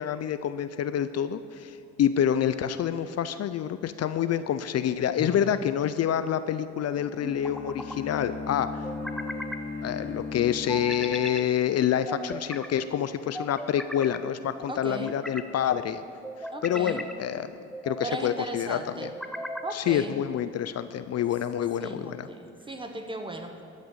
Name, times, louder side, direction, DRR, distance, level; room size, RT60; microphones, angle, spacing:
voice 1, 0.0-8.8 9.8-16.0 16.6-17.5 17.8-19.1 19.7-22.3, left 9 dB, 55° left, 12 dB, 0.5 m, -27 dB
sound 1, 5.2-5.8 7.2-8.0 8.8-9.6 10.7-11.5 12.1-12.7 13.3-14.2 14.8-15.5 16.2-17.2 17.7-18.2 19.0-19.8, equal, ahead, 0.7 m, -37 dB
Bowed string instrument, 6.7-11.5, left 4 dB, 30° left, 2.4 m, -37 dB
voice 2, 14.7-15.2 16.5-17.0 18.0-19.1 19.6-20.2 21.8-23.6, right 1 dB, 15° right, 5 dB, 1.2 m, -37 dB
13.0 x 6.5 x 7.3 m, 2.6 s
cardioid pair, 90°, 30 cm